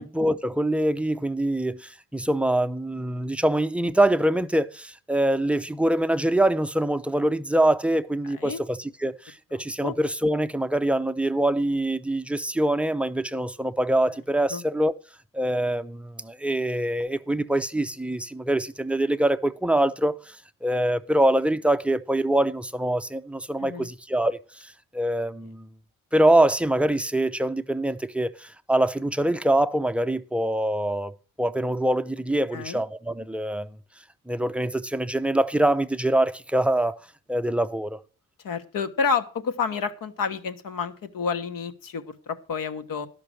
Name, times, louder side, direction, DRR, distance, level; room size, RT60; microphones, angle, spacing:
voice 1, 0.0-14.9 15.3-25.7 26.1-33.8 34.3-37.0 37.3-38.0, right 1 dB, 5° right, 0.4 m, -24 dB
voice 2, 32.5-32.8 38.4-43.1, left 5 dB, 70° left, 1.3 m, -29 dB
12.5 x 5.9 x 6.4 m
wide cardioid pair, 150°, 34 cm